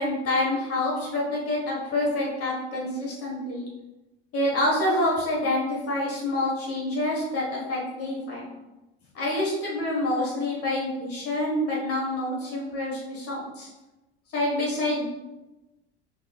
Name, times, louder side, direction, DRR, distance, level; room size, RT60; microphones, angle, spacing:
voice 1, 0.0-3.7 4.3-8.5 9.1-13.7 14.3-15.0, left 1 dB, 45° left, -3 dB, 1.5 m, -27 dB
4.8 x 4.1 x 2.4 m, 1.0 s
hypercardioid pair, 75°, 34 cm